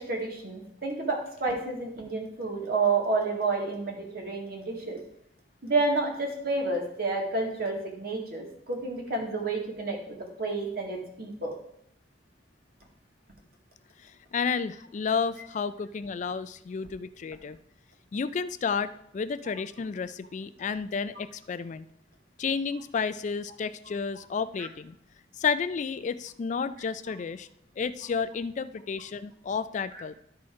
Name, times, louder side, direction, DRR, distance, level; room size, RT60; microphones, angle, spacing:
voice 1, 0.0-5.0 5.6-11.6 29.9-30.0, right 3 dB, 60° right, 0 dB, 2.0 m, -30 dB
voice 2, 14.0-17.6 18.1-21.9 22.4-24.9 25.4-27.5 27.8-30.1, left 5 dB, 45° left, 14 dB, 0.3 m, -31 dB
11.5 x 4.3 x 4.8 m, 0.74 s
head